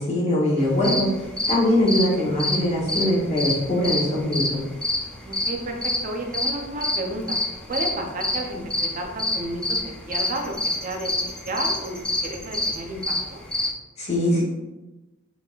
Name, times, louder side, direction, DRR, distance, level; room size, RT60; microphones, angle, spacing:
voice 1, 0.0-4.6 14.0-14.4, left 1 dB, 35° left, -6 dB, 1.0 m, -22 dB
sound 1, 0.6-13.7, left 1 dB, 5° left, 0.4 m, -27 dB
voice 2, 5.2-7.4 7.7-13.4, right 1 dB, 40° right, 2 dB, 0.6 m, -32 dB
3.7 x 3.6 x 2.4 m, 1.1 s
head